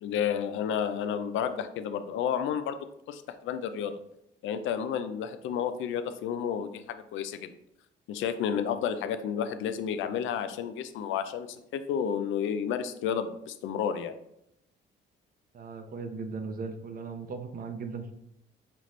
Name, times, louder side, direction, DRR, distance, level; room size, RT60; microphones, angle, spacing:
voice 1, 0.0-2.8 3.1-4.0 4.4-7.6 8.1-14.2, left 8 dB, 80° left, 10 dB, 0.4 m, -31 dB
voice 2, 15.5-18.1, right 4 dB, 45° right, 8 dB, 0.6 m, -37 dB
5.6 x 2.5 x 3.1 m, 0.80 s
cardioid pair, 90°, 20 cm